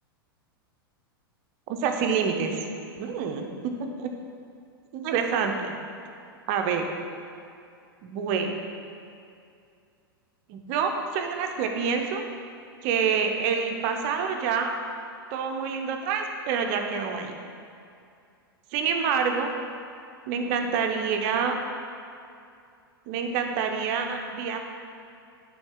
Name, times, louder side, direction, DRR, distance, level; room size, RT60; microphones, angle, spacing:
voice 1, 1.7-2.6 3.0-4.1 4.9-5.7 6.5-6.8 8.0-8.5 10.5-12.2 12.8-14.7 15.3-17.3 18.7-19.5 20.3-21.6 23.1-24.6, right 6 dB, 45° right, 4 dB, 0.7 m, -27 dB
8.9 x 3.9 x 3.7 m, 2.5 s
figure-of-eight pair, 95°, 13 cm